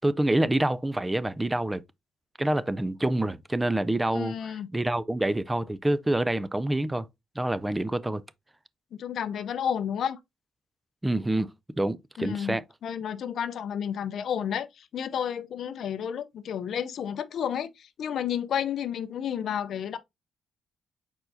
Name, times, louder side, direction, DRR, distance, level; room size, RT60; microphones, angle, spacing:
voice 1, 0.0-1.8 2.4-7.1 7.4-8.2 11.0-11.5 11.8-12.6, right 1 dB, 10° right, 0.4 m, -27 dB
voice 2, 4.1-4.7 8.9-10.2 12.2-20.0, left 8 dB, 65° left, 0.5 m, -31 dB
4.4 x 4.4 x 2.6 m
cardioid pair, 90°, 0 cm